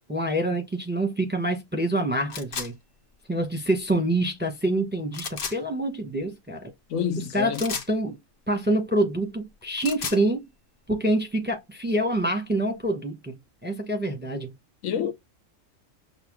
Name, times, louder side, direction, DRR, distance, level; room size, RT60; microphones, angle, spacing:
voice 1, 0.1-2.7 3.3-6.7 7.2-8.2 8.5-10.4 10.9-14.5, right 1 dB, 10° right, 0.7 m, -26 dB
sound 1, 2.3-2.7 5.1-5.6 7.5-7.9 9.6-10.2, left 5 dB, 45° left, 1.0 m, -33 dB
voice 2, 6.9-7.6 14.8-15.1, left 8 dB, 75° left, 1.1 m, -28 dB
6.5 x 2.2 x 3.5 m
omnidirectional pair, 1.4 m